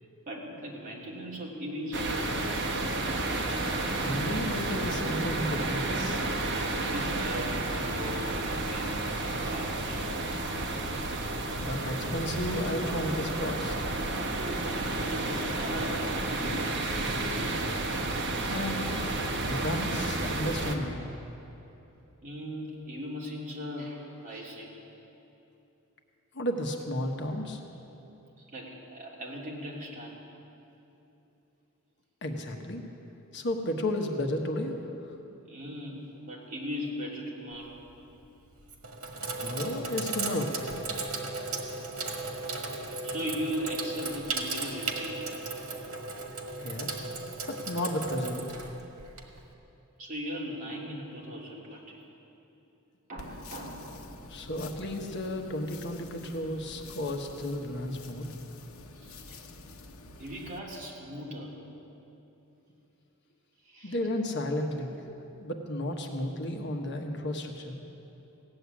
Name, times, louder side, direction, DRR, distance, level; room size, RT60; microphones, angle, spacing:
voice 1, 0.3-2.4 6.8-9.0 9.5-10.1 14.1-16.7 22.2-24.7 28.4-30.2 35.4-37.8 43.0-45.3 50.0-52.0 53.1-54.2 58.9-59.4 60.2-61.6 63.6-64.0, equal, 40° right, -4 dB, 2.8 m, -38 dB
sound 1, 1.9-20.8, right 2 dB, 55° right, 1.3 m, -31 dB
voice 2, 4.0-6.2 11.6-13.8 18.4-19.1 19.4-21.1 26.3-27.6 32.2-32.8 33.3-34.8 39.2-40.6 46.6-47.0 47.5-48.6 54.3-58.3 63.8-64.9 65.4-67.8, left 1 dB, 55° left, 3 dB, 1.2 m, -33 dB
Sink (filling or washing), 37.5-37.9 38.6-49.5, right 3 dB, 85° right, 1.7 m, -36 dB
sound 2, 53.2-60.6, left 3 dB, 75° left, 1.0 m, -48 dB
16.5 x 7.8 x 9.8 m, 3.0 s
head